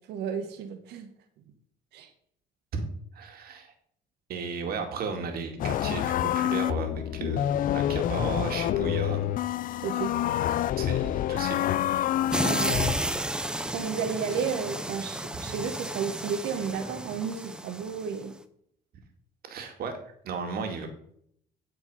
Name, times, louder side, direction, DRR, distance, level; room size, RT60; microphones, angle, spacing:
voice 1, 0.1-1.1 1.9-2.1 9.8-10.1 12.4-12.9 13.4-18.3, right 6 dB, 80° right, 6 dB, 1.3 m, -33 dB
voice 2, 3.1-3.7 4.3-7.4 7.7-9.2 10.8-11.7 19.5-20.0 20.2-20.9, right 5 dB, 65° right, 5 dB, 2.2 m, -34 dB
sound 1, 5.6-12.9, left 12 dB, 55° left, 0.4 m, -27 dB
sound 2, 12.3-18.2, right 1 dB, 5° right, 0.7 m, -32 dB
12.0 x 4.8 x 5.5 m, 0.66 s
cardioid pair, 110°, 17 cm